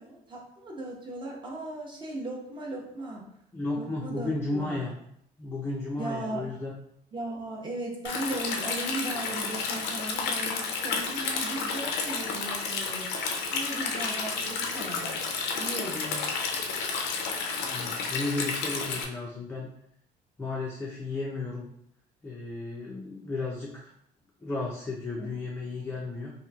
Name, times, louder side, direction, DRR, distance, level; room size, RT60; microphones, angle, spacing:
voice 1, 0.0-3.3 3.7-4.9 6.0-6.4 7.1-13.1 13.5-15.1 15.5-16.3 25.2-25.3, right 2 dB, 30° right, -2 dB, 0.8 m, -37 dB
voice 2, 3.5-4.9 5.4-6.7 17.6-19.7 20.4-21.7 22.2-23.9 24.4-26.3, left 2 dB, 15° left, -3 dB, 0.4 m, -33 dB
Stream, 8.0-19.0, left 4 dB, 85° left, 0.5 m, -31 dB
2.9 x 2.6 x 2.3 m, 0.71 s
cardioid pair, 110°, 17 cm